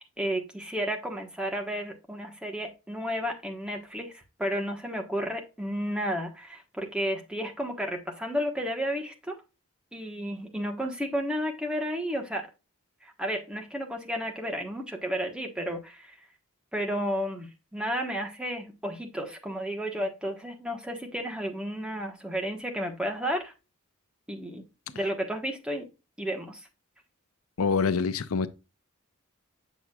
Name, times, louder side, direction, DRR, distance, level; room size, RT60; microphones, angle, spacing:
voice 1, 0.0-9.4 9.9-12.5 13.0-16.2 16.7-23.5 24.3-24.6 24.9-25.8 26.2-26.7, equal, 5° right, 1.2 m, -32 dB
voice 2, 27.6-28.5, left 5 dB, 85° left, 0.6 m, -25 dB
7.9 x 6.1 x 2.3 m
head